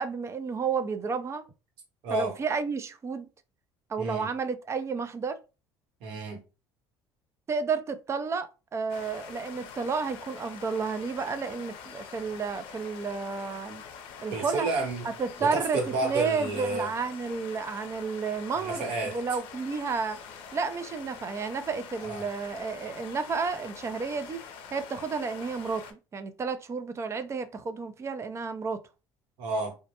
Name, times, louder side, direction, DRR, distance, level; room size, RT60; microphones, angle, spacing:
voice 1, 0.0-1.4 2.1-3.3 3.9-5.4 7.5-13.8 14.2-14.7 15.2-20.2 20.5-24.4 24.7-28.8, right 5 dB, 30° right, 0.4 m, -31 dB
voice 2, 2.0-2.4 4.0-4.3 6.0-6.4 14.3-15.1 15.4-16.9 18.6-19.2 22.0-22.3 29.4-29.7, right 3 dB, 75° right, 1.0 m, -30 dB
sound 1, 8.9-25.9, left 7 dB, 70° left, 0.5 m, -45 dB
2.2 x 2.0 x 2.8 m
supercardioid pair, 85°, 9 cm